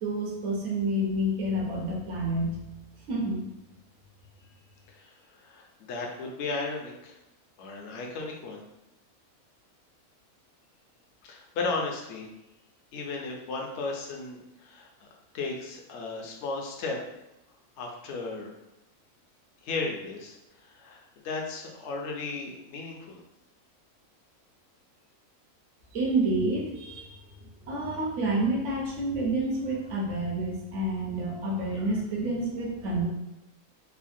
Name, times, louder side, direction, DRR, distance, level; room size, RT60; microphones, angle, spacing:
voice 1, 0.0-2.6 3.1-3.4 25.9-33.1, right 1 dB, 60° right, -2 dB, 1.0 m, -29 dB
voice 2, 5.4-7.1 7.6-8.6 11.3-12.3 12.9-15.1 15.3-17.0 17.8-18.5 19.6-20.4 20.6-23.2, left 3 dB, 65° left, 0 dB, 0.7 m, -35 dB
3.3 x 2.1 x 2.5 m, 0.93 s
omnidirectional pair, 1.5 m